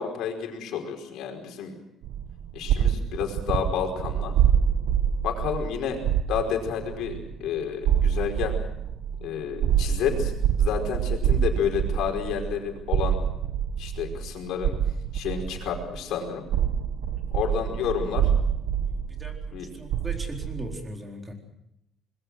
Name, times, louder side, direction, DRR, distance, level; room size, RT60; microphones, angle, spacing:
voice 1, 0.0-1.8 2.5-4.3 5.2-6.0 6.3-8.5 9.2-10.3 10.6-13.2 13.8-14.7 15.1-16.4 17.3-18.3 19.5-19.7, left 8 dB, 75° left, 3 dB, 5.1 m, -30 dB
sound 1, 2.0-16.1 16.5-20.8, right 8 dB, 75° right, 1.3 m, -26 dB
voice 2, 18.9-21.3, equal, 20° right, 2 dB, 4.2 m, -39 dB
25.0 x 21.5 x 6.4 m, 0.80 s
cardioid pair, 140°, 0 cm